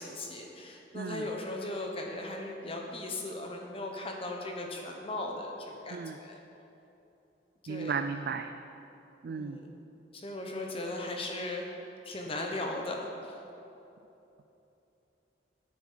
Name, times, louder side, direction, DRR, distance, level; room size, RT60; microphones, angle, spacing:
voice 1, 0.0-6.4 7.6-7.9 9.2-9.7 10.1-13.4, left 2 dB, 30° left, 1 dB, 1.1 m, -38 dB
voice 2, 0.9-1.3 5.9-6.2 7.7-8.5 9.2-9.6, right 5 dB, 55° right, 8 dB, 0.4 m, -35 dB
9.9 x 8.5 x 6.7 m, 3.0 s
head